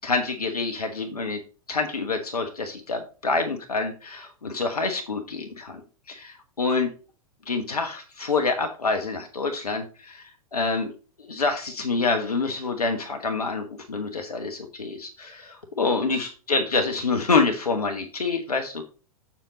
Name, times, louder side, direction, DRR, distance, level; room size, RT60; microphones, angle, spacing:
voice 1, 0.0-1.4 1.7-5.8 6.1-6.9 7.5-10.9 11.2-18.8, left 4 dB, 80° left, 5 dB, 1.2 m, -27 dB
7.5 x 7.5 x 4.1 m, 0.36 s
figure-of-eight pair, 100°, 19 cm